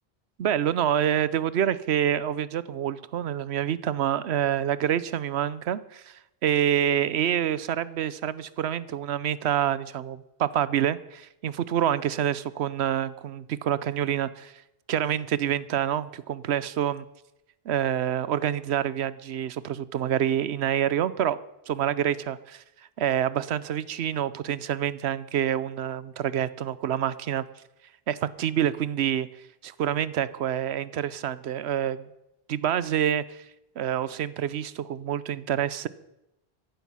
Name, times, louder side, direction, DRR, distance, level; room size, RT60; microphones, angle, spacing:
voice 1, 0.4-14.5 14.9-17.1 17.7-21.4 21.7-22.6 23.0-27.4 28.1-29.3 29.6-32.1 32.5-33.4 33.8-35.9, right 10 dB, 90° right, 17 dB, 1.0 m, -27 dB
15.0 x 12.0 x 5.6 m, 0.89 s
omnidirectional pair, 1.1 m